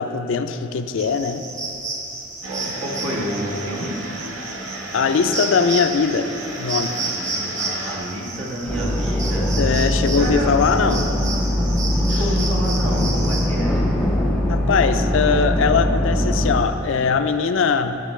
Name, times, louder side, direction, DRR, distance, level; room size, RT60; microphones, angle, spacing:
voice 1, 0.0-1.4 4.9-6.3 6.6-6.9 9.6-11.1 12.1-12.2 14.5-18.0, left 5 dB, 65° left, 9 dB, 0.4 m, -21 dB
sound 1, 1.0-13.4, right 3 dB, 40° right, 1.1 m, -31 dB
sound 2, 2.4-8.0, right 1 dB, 90° right, 1.0 m, -34 dB
voice 2, 2.5-3.9 7.0-9.5 10.2-10.5 10.8-11.1 11.5-13.7, equal, 70° right, -4 dB, 1.7 m, -29 dB
sound 3, 8.7-16.6, left 1 dB, ahead, 0.7 m, -21 dB
11.5 x 6.7 x 3.2 m, 3.0 s
head